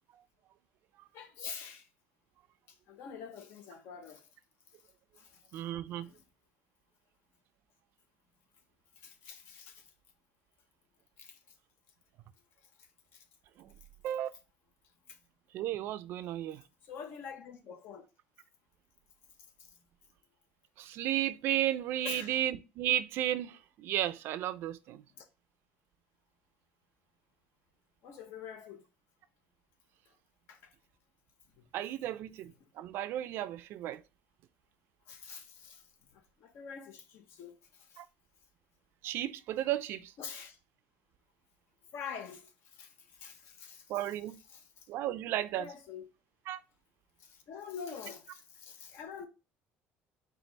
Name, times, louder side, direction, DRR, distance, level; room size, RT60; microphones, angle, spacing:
voice 1, 1.1-1.9 2.7-4.3 5.2-5.6 6.0-6.2 9.0-9.9 11.2-11.4 12.8-13.2 15.1-15.2 16.8-18.0 19.6-19.7 22.0-22.4 25.2-25.3 28.0-28.8 30.5-30.7 31.6-31.7 32.0-32.1 32.4-32.5 35.1-38.0 40.2-40.6 41.9-44.1 44.5-44.9 45.5-46.1 47.2-49.3, left 6 dB, 70° left, 1.0 m, -46 dB
voice 2, 5.5-6.1 14.0-14.3 15.5-16.6 20.8-25.0 31.7-32.5 32.8-34.0 38.0-38.1 39.0-40.1 43.9-44.4 44.9-45.6 46.5-46.6, right 12 dB, 65° right, 0.4 m, -33 dB
4.6 x 2.4 x 3.9 m
cardioid pair, 120°, 4 cm